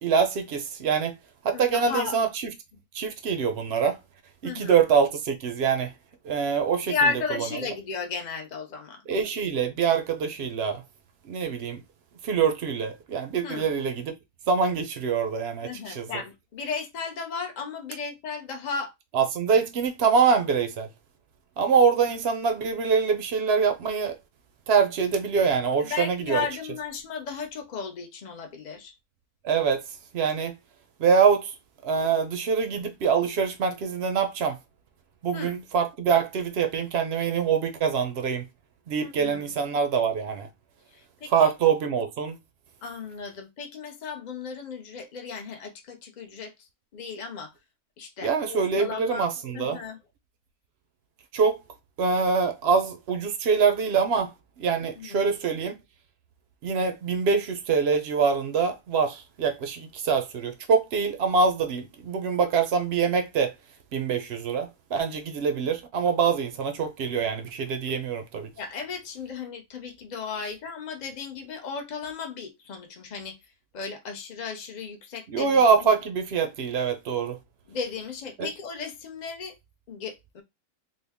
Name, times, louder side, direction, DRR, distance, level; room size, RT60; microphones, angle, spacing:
voice 1, 0.0-1.1 1.4-2.3 2.9-4.0 4.4-5.9 6.2-6.9 9.1-10.8 11.3-11.8 12.2-14.1 14.5-16.1 19.1-20.9 21.6-24.1 24.7-26.4 29.4-29.8 30.1-30.5 31.0-31.5 31.8-34.6 35.2-38.5 38.9-40.5 41.3-42.4 48.2-49.8 51.3-51.6 52.0-55.8 56.6-63.5 63.9-68.5 75.3-77.4 78.4-78.5, right 6 dB, 70° right, 0.6 m, -24 dB
voice 2, 1.5-2.2 4.4-4.8 6.9-9.0 13.4-13.7 15.6-18.9 25.8-28.9 35.3-35.6 39.0-39.5 40.9-41.5 42.8-47.5 48.0-49.3 49.5-50.0 55.0-55.3 68.6-73.4 73.7-75.6 77.7-79.6 79.9-80.4, left 5 dB, 75° left, 0.4 m, -34 dB
3.7 x 2.1 x 3.4 m
omnidirectional pair, 1.7 m